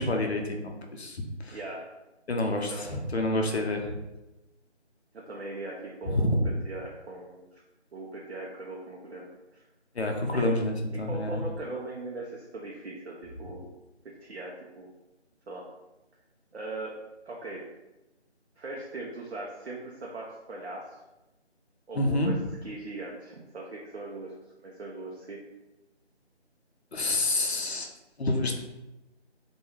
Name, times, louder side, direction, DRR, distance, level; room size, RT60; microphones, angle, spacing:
voice 1, 0.0-1.6 2.3-3.9 6.1-6.5 10.0-11.4 22.0-22.3 26.9-27.9 28.2-28.6, left 1 dB, 65° left, 2 dB, 0.5 m, -28 dB
voice 2, 1.5-1.9 2.7-3.0 3.7-3.8 5.3-7.6 7.9-9.6 10.3-10.6 11.1-13.6 14.2-14.9 15.5-15.6 16.5-16.9 17.3-17.6 18.6-21.0 21.9-22.4 22.6-25.4, right 2 dB, 65° right, -3 dB, 0.5 m, -40 dB
2.3 x 2.3 x 3.0 m, 1.0 s
figure-of-eight pair, 165°, 35 cm